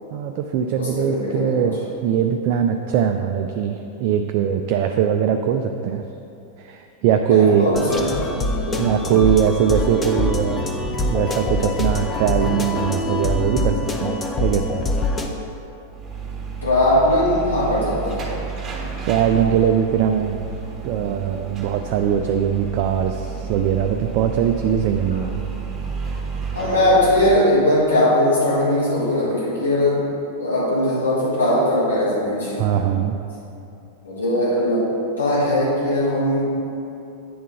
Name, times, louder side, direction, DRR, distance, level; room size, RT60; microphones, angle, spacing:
voice 1, 0.1-6.0 6.6-7.7 8.8-10.7 11.1-14.9 19.0-20.4 20.8-25.5 32.6-33.2, right 8 dB, 45° right, 5 dB, 0.4 m, -21 dB
voice 2, 0.8-1.7 7.3-9.1 16.6-18.2 26.5-30.0 30.4-32.5 34.0-34.9 35.2-36.4, left 1 dB, 75° left, -8 dB, 1.8 m, -20 dB
sound 1, 7.7-15.3, left 2 dB, 15° left, 0.7 m, -24 dB
sound 2, 15.9-27.4, right 6 dB, 20° right, 1.6 m, -31 dB
9.4 x 3.7 x 5.7 m, 2.7 s
figure-of-eight pair, 90°, 0 cm